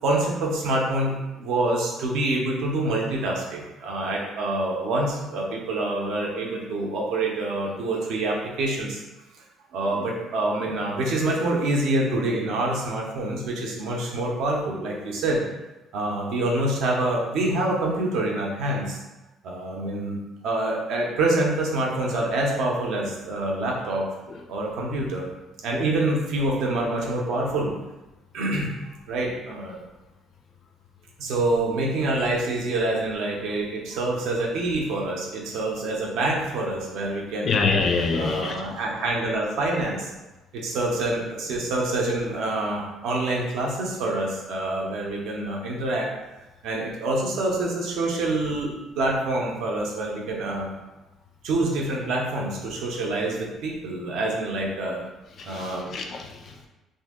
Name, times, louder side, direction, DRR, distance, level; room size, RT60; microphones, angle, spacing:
voice 1, 0.0-9.0 9.7-15.4 15.9-19.0 19.4-24.0 24.5-25.3 25.6-27.7 28.3-28.7 29.1-29.8 31.2-37.6 38.1-40.1 40.5-46.1 46.6-50.7 51.4-55.0 55.4-56.0, right 2 dB, 65° right, -1 dB, 0.7 m, -26 dB
voice 2, 37.4-38.6 55.4-56.7, left 4 dB, 35° left, 3 dB, 0.4 m, -26 dB
2.8 x 2.6 x 3.6 m, 1.1 s
cardioid pair, 180°, 0 cm